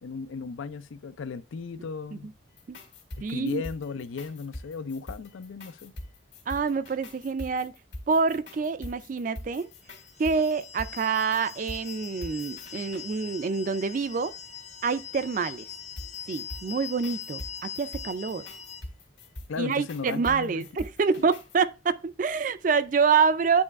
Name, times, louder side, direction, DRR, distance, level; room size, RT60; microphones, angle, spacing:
voice 1, 0.0-2.3 3.2-5.9 19.5-20.6 21.2-21.3, left 4 dB, 85° left, 0.4 m, -36 dB
sound 1, 2.5-13.1 16.0-21.6, left 1 dB, 65° left, 1.8 m, -43 dB
voice 2, 3.2-3.6 6.5-7.7 8.1-9.7 10.2-14.3 14.8-15.6 16.3-18.5 19.6-23.6, right 5 dB, 40° right, 0.3 m, -26 dB
sound 2, 9.8-18.8, left 8 dB, 35° left, 0.6 m, -42 dB
8.9 x 3.1 x 3.5 m
head